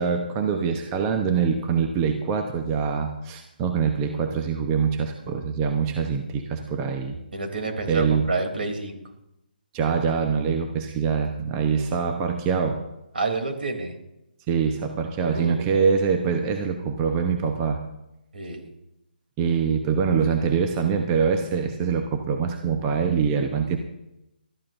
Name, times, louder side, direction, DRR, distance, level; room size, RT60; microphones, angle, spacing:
voice 1, 0.0-7.2 7.9-8.2 9.7-12.8 14.5-17.8 19.4-23.8, right 6 dB, 20° right, 5 dB, 0.9 m, -24 dB
voice 2, 7.3-9.0 13.1-14.0 15.2-15.6 18.3-18.7, right 3 dB, 70° right, 3 dB, 3.2 m, -29 dB
21.5 x 13.5 x 2.6 m, 0.87 s
hypercardioid pair, 150°, 5 cm